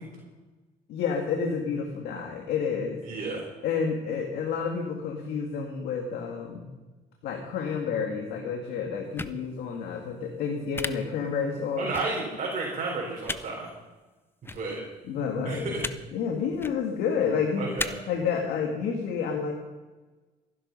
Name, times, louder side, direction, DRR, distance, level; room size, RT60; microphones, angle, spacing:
voice 1, 0.9-3.0 3.6-6.7 7.2-11.9 15.1-15.7 16.1-17.7 18.1-19.5, left 6 dB, 75° left, 2 dB, 1.9 m, -29 dB
voice 2, 3.1-3.5 11.8-13.7 14.5-14.8 15.4-15.8 17.6-17.9, right 3 dB, 45° right, -4 dB, 4.3 m, -32 dB
sound 1, 9.2-9.3 10.7-10.9 11.9-12.0 13.2-13.4 14.4-14.6 15.8-15.9 16.5-16.7 17.8-17.9, left 3 dB, 15° left, 0.6 m, -32 dB
15.0 x 10.5 x 5.5 m, 1.2 s
cardioid pair, 110°, 17 cm